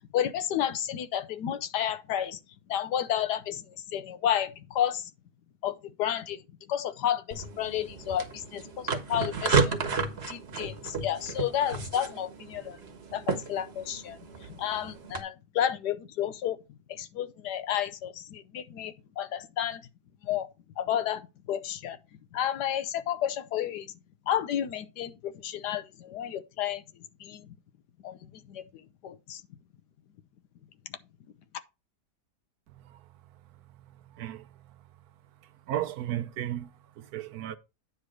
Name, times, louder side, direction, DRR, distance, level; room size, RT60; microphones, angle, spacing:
voice 1, 0.1-2.4 2.7-5.1 5.6-6.4 6.7-9.8 10.3-12.8 13.1-14.2 14.5-16.6 16.9-19.8 20.2-20.5 20.8-22.0 22.3-23.9 24.3-26.8 27.2-27.5 28.0-28.2 28.5-28.6 29.0-29.4, left 10 dB, 85° left, 1.3 m, -31 dB
sound 1, 7.3-15.2, right 4 dB, 45° right, 1.2 m, -32 dB
voice 2, 34.1-34.5 35.7-36.7 37.0-37.6, right 12 dB, 70° right, 1.1 m, -34 dB
9.5 x 3.3 x 6.1 m
omnidirectional pair, 1.8 m